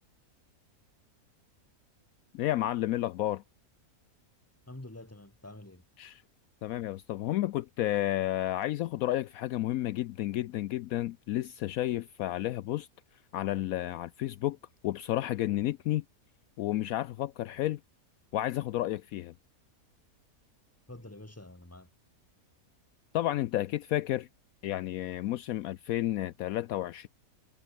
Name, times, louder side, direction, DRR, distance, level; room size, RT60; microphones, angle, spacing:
voice 1, 2.3-3.4 6.0-6.2 6.6-12.9 13.3-14.6 14.8-16.0 16.6-17.8 18.3-19.3 23.1-24.3 24.6-27.1, left 14 dB, 75° left, 1.0 m, -31 dB
voice 2, 4.7-5.8 20.9-21.9, left 1 dB, 10° left, 2.0 m, -47 dB
omnidirectional pair, 1.6 m